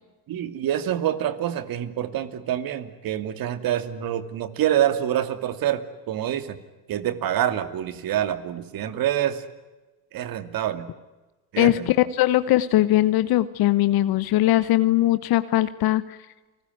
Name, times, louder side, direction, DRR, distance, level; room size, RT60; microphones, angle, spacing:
voice 1, 0.3-6.6 6.9-9.4 10.1-10.9 11.5-12.1, right 11 dB, 50° right, 12 dB, 2.6 m, -26 dB
voice 2, 11.6-16.2, left 15 dB, 55° left, 13 dB, 1.2 m, -20 dB
29.5 x 20.0 x 9.4 m, 1.2 s
supercardioid pair, 90°, 43 cm